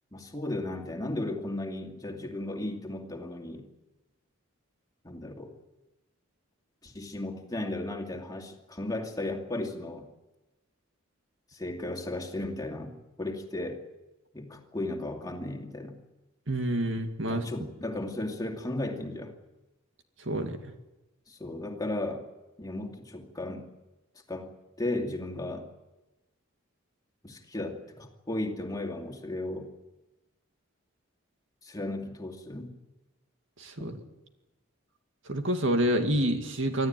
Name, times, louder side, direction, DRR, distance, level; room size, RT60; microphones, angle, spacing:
voice 1, 0.1-3.7 5.0-5.5 6.8-10.1 11.5-13.8 14.3-16.0 17.3-19.3 21.3-22.2 22.6-23.7 24.3-25.6 27.2-29.7 31.6-32.7 33.8-33.9, left 2 dB, 20° left, 2 dB, 2.5 m, -35 dB
voice 2, 16.5-17.4 20.3-20.6 33.6-34.0 35.3-36.9, right 1 dB, 65° right, 5 dB, 2.4 m, -28 dB
25.5 x 14.5 x 9.3 m, 1.0 s
head